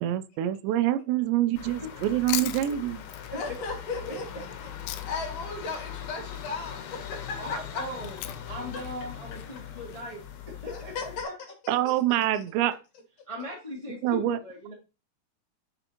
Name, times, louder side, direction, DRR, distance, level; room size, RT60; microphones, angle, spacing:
voice 1, 0.0-3.0 11.7-12.7 14.0-14.4, right 13 dB, 90° right, 2.9 m, -26 dB
sound 1, 1.6-11.2, left 9 dB, 70° left, 2.7 m, -41 dB
Chewing mastication, 1.9-5.4 5.7-10.0, left 13 dB, 90° left, 2.9 m, -40 dB
voice 2, 3.3-4.7 5.1-7.8 8.7-8.8 10.7-11.3 11.8-11.9, left 4 dB, 45° left, 2.6 m, -36 dB
voice 3, 7.3-8.2 8.5-11.3 13.3-14.7, left 1 dB, 10° left, 1.6 m, -39 dB
7.8 x 6.7 x 2.9 m
omnidirectional pair, 5.0 m